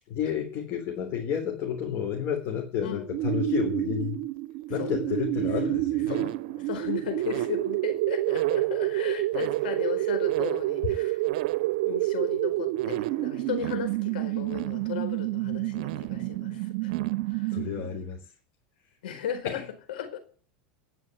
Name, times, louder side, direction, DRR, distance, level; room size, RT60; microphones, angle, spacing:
voice 1, 0.1-4.2 4.7-6.3 17.5-18.2 19.4-19.6, left 8 dB, 45° left, 4.0 m, -31 dB
sound 1, 3.1-18.0, right 18 dB, 65° right, 0.7 m, -28 dB
voice 2, 4.7-5.1 5.6-11.2 11.8-16.9 17.3-17.6 19.0-20.2, left 8 dB, 85° left, 4.5 m, -36 dB
19.0 x 6.3 x 9.5 m
supercardioid pair, 125°, 5 cm